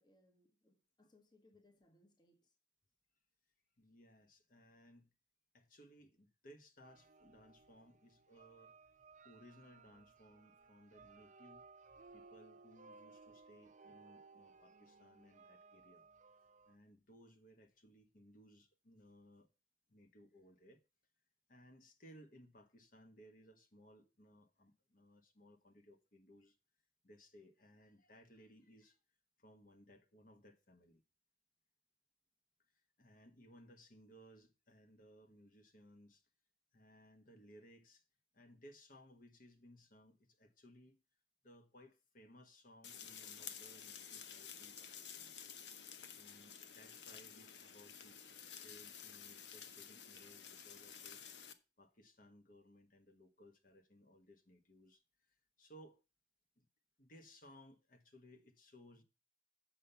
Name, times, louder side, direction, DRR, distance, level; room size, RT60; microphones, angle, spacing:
voice 1, 0.0-2.5, left 2 dB, 25° left, 1.1 m, -70 dB
voice 2, 3.8-5.1 5.5-8.7 9.2-11.7 12.1-16.1 16.6-19.5 19.9-20.8 21.5-26.6 27.0-29.0 29.4-31.0 32.7-36.3 36.7-38.0 38.3-41.0 41.4-45.3 46.1-51.2 51.8-56.0 56.6-56.7 57.0-59.0, equal, 50° left, 1.3 m, -62 dB
sound 1, 6.8-16.8, right 4 dB, 45° right, 0.6 m, -61 dB
sound 2, 42.8-51.5, left 7 dB, 80° left, 0.9 m, -52 dB
7.6 x 5.7 x 6.8 m
head